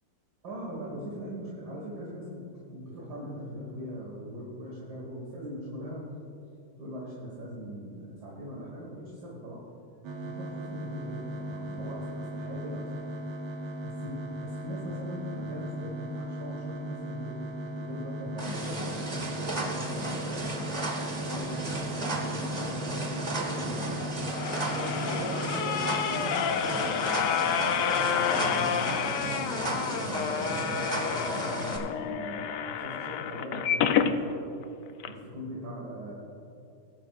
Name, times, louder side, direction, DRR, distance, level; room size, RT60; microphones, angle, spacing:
voice 1, 0.4-6.0 6.8-9.6 10.2-12.9 13.8-17.4 17.7-20.3 21.2-23.9 24.6-26.9 28.1-34.4 35.1-36.1, equal, 50° right, -4 dB, 2.2 m, -40 dB
sound 1, 10.0-26.1, equal, 80° right, 2.0 m, -37 dB
sound 2, 18.4-31.8, right 2 dB, 25° right, 1.0 m, -34 dB
sound 3, 24.0-34.1 34.6-34.7 35.0-35.1, left 8 dB, 70° left, 1.1 m, -29 dB
21.0 x 10.0 x 2.5 m, 2.8 s
omnidirectional pair, 2.3 m